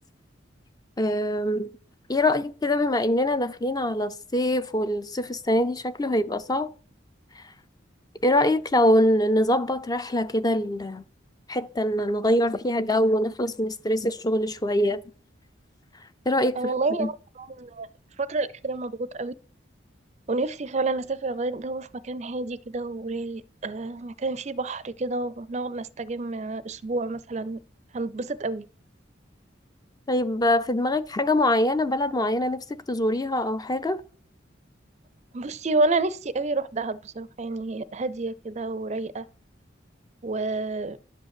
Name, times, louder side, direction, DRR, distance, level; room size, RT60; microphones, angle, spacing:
voice 1, 1.0-1.7 2.1-6.7 7.4-7.5 8.2-11.0 11.5-15.0 16.3-16.6 17.0-17.1 30.1-34.0, left 1 dB, 20° left, 0.5 m, -24 dB
voice 2, 16.6-17.9 18.2-19.3 20.3-27.6 27.9-28.7 35.3-39.3 40.2-41.0, right 3 dB, 35° right, 0.5 m, -29 dB
10.5 x 5.2 x 7.5 m
head